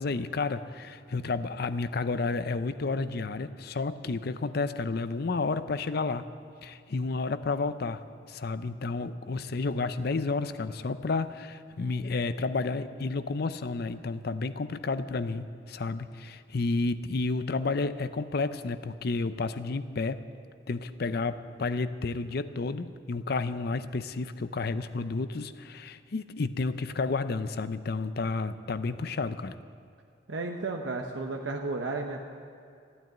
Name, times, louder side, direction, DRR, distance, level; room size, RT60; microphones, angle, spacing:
voice 1, 0.0-6.3 6.6-8.0 8.3-20.2 20.7-29.6, left 3 dB, 55° left, 12 dB, 0.6 m, -31 dB
voice 2, 30.3-32.2, right 3 dB, 80° right, 2 dB, 0.9 m, -33 dB
14.5 x 9.4 x 9.0 m, 2.4 s
head